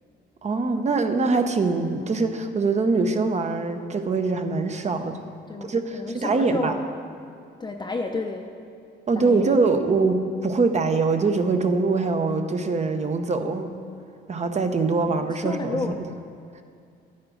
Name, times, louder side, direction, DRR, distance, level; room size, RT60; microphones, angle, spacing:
voice 1, 0.4-5.2 5.7-6.7 9.1-13.7 14.3-15.9, right 3 dB, 35° right, 7 dB, 0.8 m, -23 dB
voice 2, 5.5-6.9 7.6-8.5 9.1-9.9 15.0-16.0, left 3 dB, 20° left, 2 dB, 0.6 m, -31 dB
11.0 x 9.6 x 3.8 m, 2.4 s
cardioid pair, 90°, 20 cm